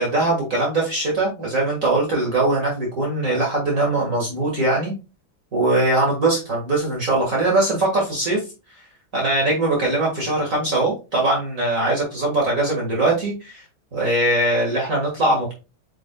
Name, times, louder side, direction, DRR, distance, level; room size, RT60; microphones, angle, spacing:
voice 1, 0.0-4.9 5.5-8.4 9.1-13.6 13.9-15.5, right 2 dB, 40° right, -2 dB, 2.1 m, -21 dB
7.9 x 5.4 x 2.3 m, 0.29 s
omnidirectional pair, 2.2 m